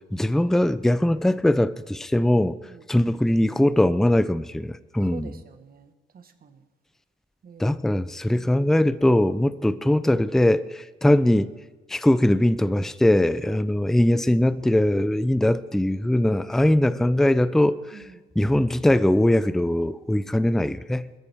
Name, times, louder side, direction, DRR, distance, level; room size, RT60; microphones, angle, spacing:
voice 1, 0.1-2.6 2.9-5.3 7.6-11.5 11.9-17.8 18.4-21.1, left 1 dB, ahead, 0.5 m, -21 dB
voice 2, 2.6-3.1 5.1-6.6 7.4-8.0 13.4-13.7 16.2-16.4 17.9-18.2, right 6 dB, 50° right, 1.6 m, -46 dB
20.0 x 13.5 x 3.6 m
cardioid pair, 90°, 20 cm